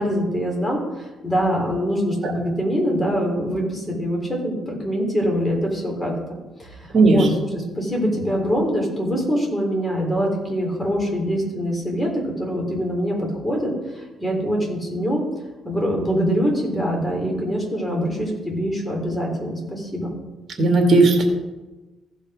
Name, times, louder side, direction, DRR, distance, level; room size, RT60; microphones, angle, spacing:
voice 1, 0.0-6.1 6.6-7.3 7.5-15.2 15.6-20.1, equal, 15° left, -1 dB, 3.5 m, -24 dB
voice 2, 6.9-7.3 20.6-21.2, right 3 dB, 50° right, 1 dB, 2.4 m, -15 dB
15.5 x 5.4 x 5.0 m, 1.1 s
cardioid pair, 90°, 0 cm